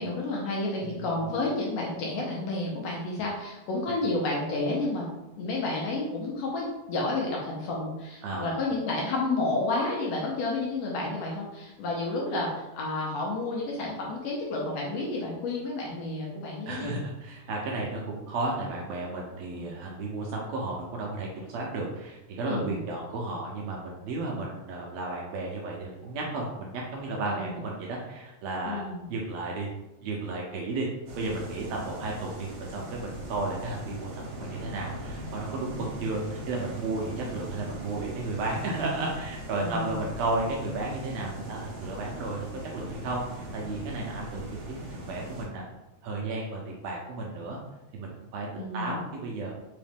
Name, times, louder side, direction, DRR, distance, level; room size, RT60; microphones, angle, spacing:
voice 1, 0.0-5.1 5.4-17.0 19.5-19.7 22.5-22.8 27.3-27.6 28.7-29.1 39.6-40.0 48.6-49.0, left 2 dB, 70° left, -2 dB, 1.7 m, -31 dB
voice 2, 0.8-1.3 8.2-8.5 16.7-29.7 30.0-30.9 31.2-42.5 42.7-44.8 45.1-45.6 46.0-47.6 47.9-48.5 48.7-49.5, right 2 dB, 75° right, -2 dB, 1.6 m, -33 dB
sound 1, 31.1-45.5, right 1 dB, 60° right, 2.0 m, -40 dB
4.8 x 3.1 x 3.4 m, 0.99 s
omnidirectional pair, 3.5 m